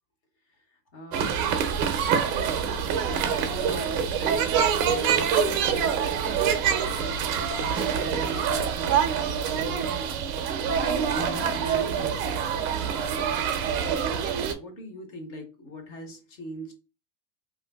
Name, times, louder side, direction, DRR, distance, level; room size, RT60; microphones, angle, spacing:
voice 1, 0.9-6.2 6.8-10.1 10.6-16.7, left 1 dB, 30° left, 4 dB, 0.8 m, -42 dB
sound 1, 1.1-14.5, right 7 dB, 40° right, 0.5 m, -26 dB
2.6 x 2.5 x 3.4 m, 0.32 s
supercardioid pair, 175°, 42 cm